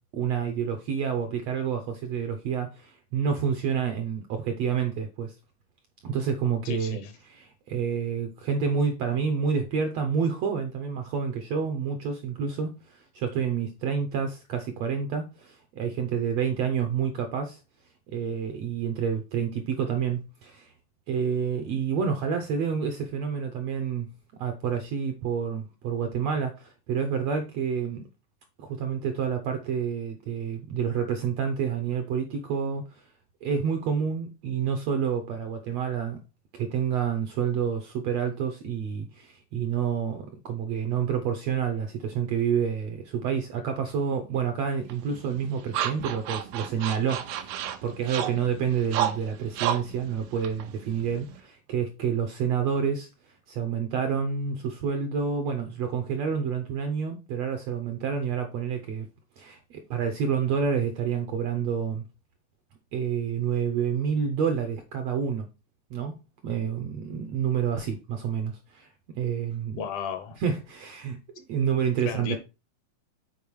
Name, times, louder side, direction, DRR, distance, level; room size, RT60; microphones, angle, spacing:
voice 1, 0.1-5.3 6.0-7.0 7.2-17.6 18.1-20.7 21.1-24.1 24.4-28.0 28.6-33.0 33.4-36.2 36.5-59.1 59.4-62.0 62.9-65.5 65.9-66.2 66.4-68.9 69.1-69.8 70.4-72.4, right 7 dB, 75° right, 1.6 m, -28 dB
voice 2, 6.7-7.1 69.8-70.4 72.0-72.4, left 6 dB, 70° left, 2.3 m, -33 dB
sound 1, 44.9-51.4, right 10 dB, 90° right, 2.5 m, -33 dB
7.1 x 4.5 x 4.6 m
omnidirectional pair, 3.8 m